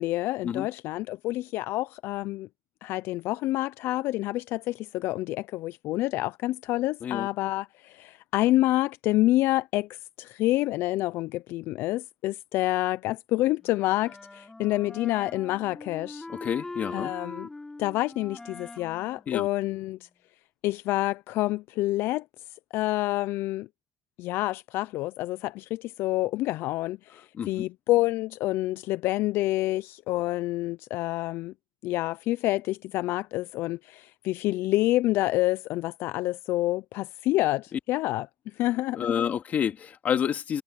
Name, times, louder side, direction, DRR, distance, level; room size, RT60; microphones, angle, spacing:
voice 1, 0.0-2.5 2.8-16.3 16.9-17.5 17.8-20.1 20.6-22.2 22.5-23.7 24.2-31.5 31.8-39.0, left 17 dB, 70° left, 0.3 m, -28 dB
Wind instrument woodwind instrument, 13.6-20.2, left 2 dB, 10° left, 3.3 m, -43 dB
voice 2, 16.3-17.1 19.3-19.5 27.3-27.6 37.7-37.8 38.9-40.6, left 8 dB, 40° left, 2.6 m, -29 dB
cardioid pair, 145°, 4 cm